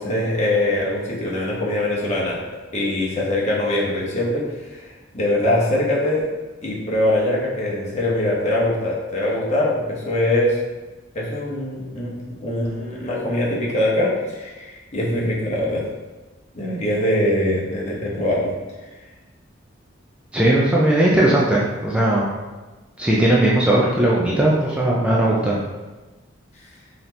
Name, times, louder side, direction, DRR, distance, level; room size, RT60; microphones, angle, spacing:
voice 1, 0.0-2.4 2.7-4.4 4.7-6.2 6.6-10.6 11.1-15.8 16.5-18.5, left 1 dB, 35° left, -5 dB, 0.9 m, -22 dB
voice 2, 20.3-22.3 23.0-25.6, right 1 dB, 5° right, -6 dB, 0.4 m, -18 dB
4.0 x 2.8 x 3.2 m, 1.2 s
head